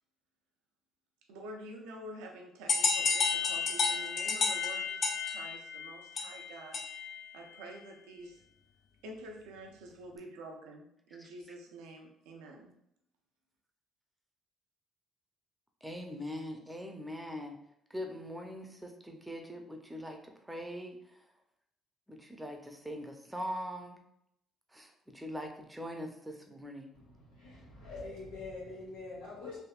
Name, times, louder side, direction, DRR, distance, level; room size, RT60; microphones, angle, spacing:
voice 1, 1.3-6.8 7.3-8.4 9.0-12.7, right 1 dB, 85° right, 2 dB, 0.5 m, -48 dB
sound 1, 2.7-7.2, left 5 dB, 55° left, 0.5 m, -31 dB
voice 2, 15.8-17.6 17.9-21.2 22.1-24.0 24.7-26.9, equal, 10° right, 3 dB, 0.6 m, -42 dB
voice 3, 26.9-29.6, left 3 dB, 85° left, -5 dB, 1.4 m, -45 dB
3.4 x 2.6 x 2.4 m, 0.76 s
supercardioid pair, 65°, 0 cm